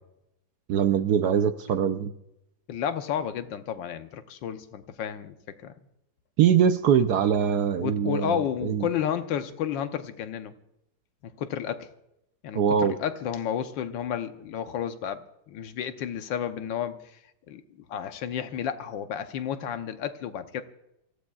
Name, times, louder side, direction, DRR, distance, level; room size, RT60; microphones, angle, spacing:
voice 1, 0.7-2.1 6.4-8.9 12.5-13.0, right 8 dB, 65° right, 9 dB, 1.0 m, -23 dB
voice 2, 2.7-5.7 7.8-10.5 11.2-11.9 12.4-17.1 17.5-17.6 17.9-20.6, left 9 dB, 75° left, 9 dB, 1.4 m, -32 dB
26.5 x 15.0 x 2.3 m, 0.84 s
omnidirectional pair, 2.1 m